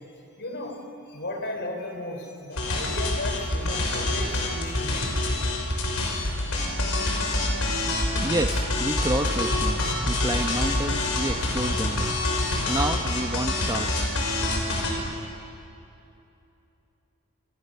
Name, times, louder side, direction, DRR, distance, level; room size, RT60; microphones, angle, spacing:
voice 1, 0.4-5.9 6.5-6.6, left 1 dB, 50° left, 4 dB, 4.5 m, -36 dB
sound 1, 2.6-14.9, left 2 dB, 70° left, 5.9 m, -26 dB
voice 2, 8.2-12.3 12.7-14.2, right 1 dB, 15° right, 6 dB, 0.8 m, -30 dB
29.0 x 27.0 x 6.8 m, 2.8 s
head